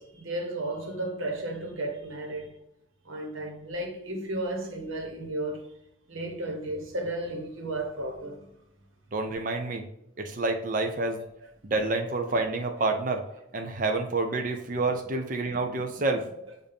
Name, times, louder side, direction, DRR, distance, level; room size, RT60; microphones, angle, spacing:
voice 1, 0.0-2.6 3.0-5.6 6.1-8.5, right 1 dB, 80° right, 1.3 m, -34 dB
voice 2, 9.1-9.8 10.2-11.2 11.6-13.2 13.5-16.3, right 3 dB, 40° right, 0.5 m, -28 dB
7.0 x 2.6 x 5.2 m
head